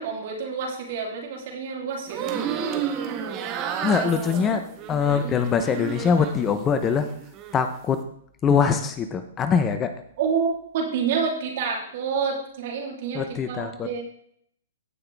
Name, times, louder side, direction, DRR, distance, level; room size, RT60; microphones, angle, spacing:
voice 1, 0.0-2.3 10.2-14.0, right 6 dB, 55° right, 0 dB, 3.1 m, -28 dB
sound 1, 2.1-6.5 6.8-7.6, right 8 dB, 30° right, 1.4 m, -31 dB
voice 2, 3.8-7.1 7.5-8.0 8.4-9.9 13.1-13.9, left 6 dB, 20° left, 9 dB, 0.8 m, -23 dB
16.5 x 5.8 x 3.5 m, 0.66 s
hypercardioid pair, 135°, 0 cm